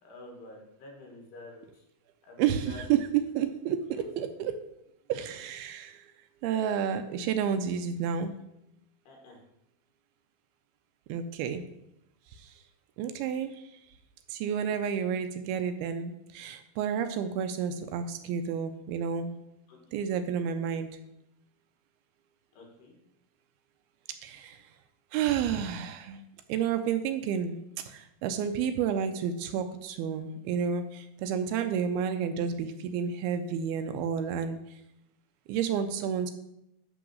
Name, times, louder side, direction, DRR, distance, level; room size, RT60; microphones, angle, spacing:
voice 1, 0.0-1.9 2.2-2.9 3.9-4.0 9.1-9.4 19.7-19.8 22.5-23.0, left 2 dB, 80° left, 1 dB, 3.8 m, -48 dB
voice 2, 2.4-3.0 3.4-4.6 5.1-6.1 6.4-8.3 11.1-11.6 12.3-12.6 13.0-13.8 14.3-19.3 19.9-20.9 24.2-24.6 25.1-26.2 26.5-34.6 35.5-36.3, right 7 dB, 80° right, 9 dB, 2.3 m, -30 dB
11.5 x 3.9 x 6.3 m, 0.82 s
omnidirectional pair, 4.7 m